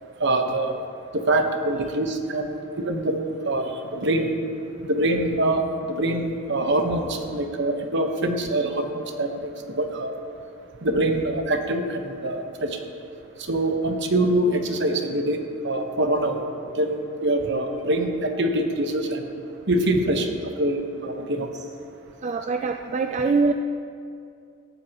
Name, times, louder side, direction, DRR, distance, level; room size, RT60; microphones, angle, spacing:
voice 1, 0.2-0.9 1.1-3.2 3.4-4.3 4.9-9.5 9.8-10.1 10.8-12.8 13.4-15.4 15.6-16.4 16.7-19.2 19.7-20.3 20.6-21.5, right 1 dB, 55° right, 4 dB, 1.2 m, -24 dB
voice 2, 22.2-23.5, right 4 dB, 35° right, 6 dB, 0.4 m, -23 dB
19.0 x 14.0 x 3.0 m, 2.5 s
head